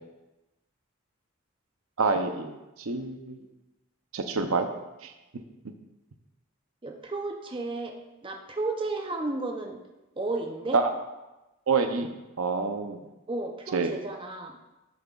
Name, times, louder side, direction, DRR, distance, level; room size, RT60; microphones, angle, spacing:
voice 1, 2.0-3.5 4.1-4.7 5.0-5.1 10.7-10.9 11.7-12.1 12.4-13.0 13.7-14.0, right 4 dB, 80° right, 7 dB, 0.7 m, -27 dB
voice 2, 6.8-7.9 8.2-9.8 10.2-10.8 13.3-14.6, right 2 dB, 25° right, 3 dB, 0.6 m, -33 dB
10.5 x 7.6 x 2.4 m, 1.0 s
head